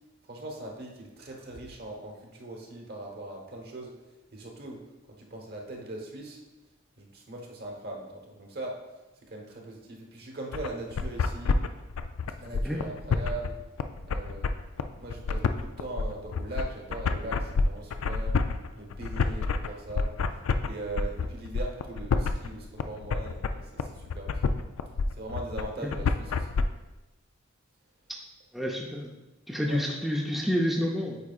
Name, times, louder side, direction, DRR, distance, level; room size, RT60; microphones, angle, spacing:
voice 1, 0.2-4.8 5.1-6.4 7.0-8.8 9.2-11.6 12.4-13.6 14.1-14.5 15.0-18.4 18.8-20.1 20.6-24.5 25.2-26.6 29.6-29.8, right 2 dB, 50° right, 0 dB, 1.1 m, -40 dB
sound 1, 10.5-26.6, left 4 dB, 85° left, 0.4 m, -28 dB
voice 2, 28.5-29.1 29.5-31.2, equal, ahead, -2 dB, 0.5 m, -28 dB
8.3 x 4.7 x 2.4 m, 1.1 s
head